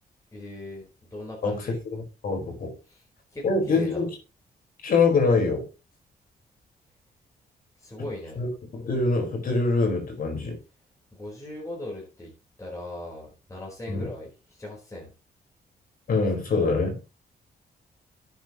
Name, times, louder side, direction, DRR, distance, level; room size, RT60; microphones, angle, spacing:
voice 1, 0.3-0.8 1.1-1.8 2.8-3.0 3.3-4.1 7.8-8.4 11.1-12.3 12.6-15.1, left 1 dB, 20° left, 4.5 m, -39 dB
voice 2, 1.9-2.7 3.4-4.1 4.8-5.6 8.4-10.6 13.9-14.1 16.1-17.0, left 3 dB, 60° left, 4.8 m, -24 dB
12.5 x 9.2 x 3.1 m
cardioid pair, 115°, 16 cm